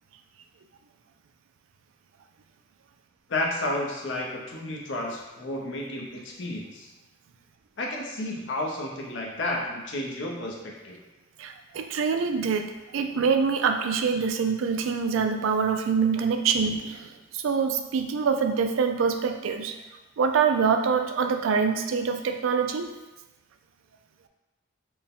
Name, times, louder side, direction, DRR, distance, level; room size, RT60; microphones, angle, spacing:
voice 1, 3.3-6.9 7.8-11.0, left 1 dB, 65° left, -1 dB, 0.7 m, -31 dB
voice 2, 11.4-19.8 20.2-22.9, right 5 dB, 80° right, 6 dB, 0.4 m, -25 dB
4.4 x 2.1 x 3.6 m, 1.1 s
head